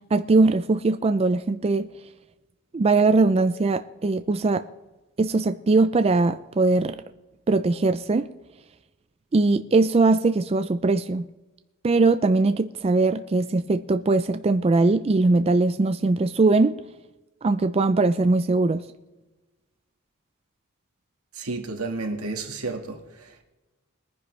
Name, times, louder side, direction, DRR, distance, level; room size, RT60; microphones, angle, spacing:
voice 1, 0.1-1.9 2.7-4.6 5.2-7.0 7.5-8.3 9.3-11.3 11.8-16.8 17.4-18.8, right 3 dB, 30° right, 0.4 m, -21 dB
voice 2, 21.3-23.4, right 3 dB, 90° right, 1.8 m, -32 dB
21.5 x 10.0 x 3.3 m
head